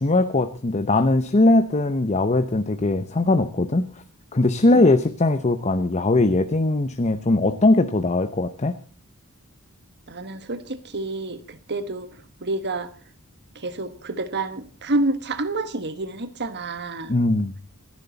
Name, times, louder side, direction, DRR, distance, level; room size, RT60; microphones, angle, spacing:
voice 1, 0.0-3.9 4.3-8.8 17.1-17.5, left 2 dB, 30° left, 10 dB, 0.8 m, -20 dB
voice 2, 10.1-12.1 12.4-12.9 13.5-17.1, right 2 dB, 50° right, 12 dB, 1.4 m, -28 dB
27.5 x 11.0 x 4.0 m, 0.35 s
head